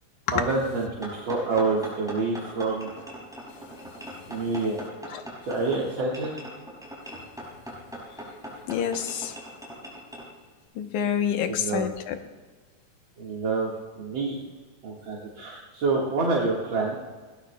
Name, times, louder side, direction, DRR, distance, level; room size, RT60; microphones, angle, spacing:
voice 1, 0.3-2.9 4.3-4.8 5.4-6.4 11.5-11.9 13.2-13.7 14.0-14.4 14.8-17.0, right 3 dB, 50° right, -3 dB, 2.1 m, -27 dB
sound 1, 1.0-10.3, equal, ahead, 5.3 m, -40 dB
voice 2, 4.8-5.2 8.7-9.4 10.8-12.2, left 8 dB, 85° left, 7 dB, 2.3 m, -28 dB
21.0 x 18.0 x 2.2 m, 1.4 s
omnidirectional pair, 3.3 m